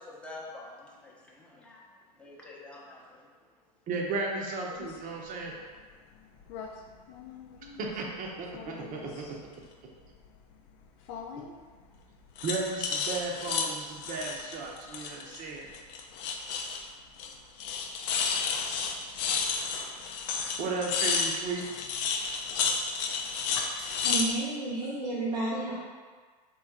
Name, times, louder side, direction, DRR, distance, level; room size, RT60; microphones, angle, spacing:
voice 1, 0.0-1.8 2.2-3.3, left 2 dB, 5° left, -5 dB, 0.8 m, -47 dB
voice 2, 3.9-5.5 7.8-9.4 12.4-15.7 20.6-21.6, right 3 dB, 40° right, 0 dB, 0.8 m, -34 dB
sound 1, 4.7-4.9 6.4-6.7 7.1-8.0 8.4-9.4 11.1-11.5 12.4-15.4 15.7-16.9 17.2-17.3 17.6-24.4, left 5 dB, 50° left, 0.5 m, -32 dB
voice 3, 23.7-25.7, right 2 dB, 80° right, -8 dB, 1.3 m, -32 dB
3.6 x 3.0 x 3.6 m, 1.5 s
hypercardioid pair, 95°, 21 cm